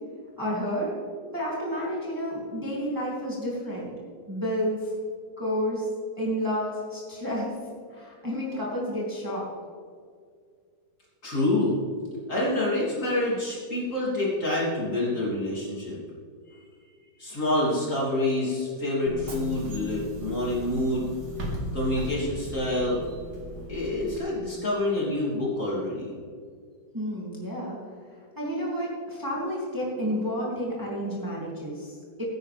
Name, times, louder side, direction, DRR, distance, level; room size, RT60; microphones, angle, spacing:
voice 1, 0.4-0.9 1.3-3.9 4.3-4.9 5.4-5.9 6.2-7.5 7.9-9.4 26.9-27.8 28.4-32.2, equal, 10° right, -5 dB, 2.6 m, -30 dB
voice 2, 11.2-11.8 12.3-16.0 17.2-21.1 21.7-23.0 23.7-26.1, left 1 dB, 40° left, -6 dB, 3.6 m, -27 dB
Bus / Engine, 19.1-24.2, equal, 60° right, 2.4 m, -37 dB
16.0 x 10.0 x 3.5 m, 2.1 s
omnidirectional pair, 2.1 m